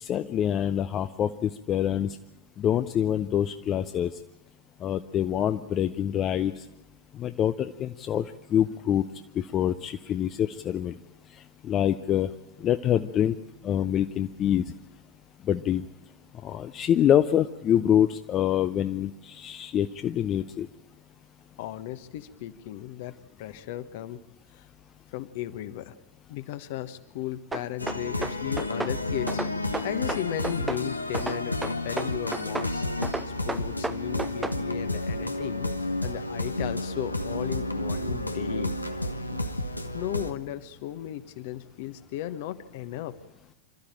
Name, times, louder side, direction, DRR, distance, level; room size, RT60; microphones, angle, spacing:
voice 1, 0.0-2.1 2.6-4.1 4.8-6.5 7.2-8.2 8.5-9.0 9.4-10.9 11.6-12.3 12.6-13.4 13.6-14.6 15.5-15.8 16.4-20.7, left 10 dB, 30° left, 9 dB, 0.7 m, -25 dB
voice 2, 21.6-24.2 24.5-24.6 25.1-25.9 26.3-29.3 29.8-32.8 33.4-35.7 36.0-38.7 39.3-39.4 39.9-43.2, left 13 dB, 50° left, 12 dB, 1.2 m, -35 dB
sound 1, 27.5-29.0 29.3-30.8 31.1-32.7 33.0-34.6, right 3 dB, 10° right, 0.8 m, -32 dB
sound 2, 27.8-40.3, left 2 dB, 85° left, 1.1 m, -31 dB
27.0 x 13.0 x 8.8 m, 0.93 s
figure-of-eight pair, 90°, 0 cm